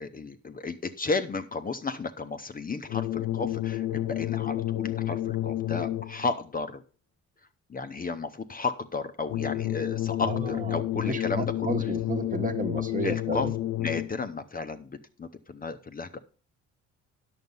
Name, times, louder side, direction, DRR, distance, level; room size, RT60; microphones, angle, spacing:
voice 1, 0.0-6.8 7.7-11.9 13.0-13.5 13.8-16.2, left 4 dB, 30° left, 0.7 m, -33 dB
sound 1, 2.9-6.3 9.3-14.3, left 14 dB, 85° left, 0.7 m, -30 dB
voice 2, 10.2-13.5, right 3 dB, 25° right, 1.1 m, -33 dB
9.5 x 6.6 x 5.4 m
cardioid pair, 90°, 30 cm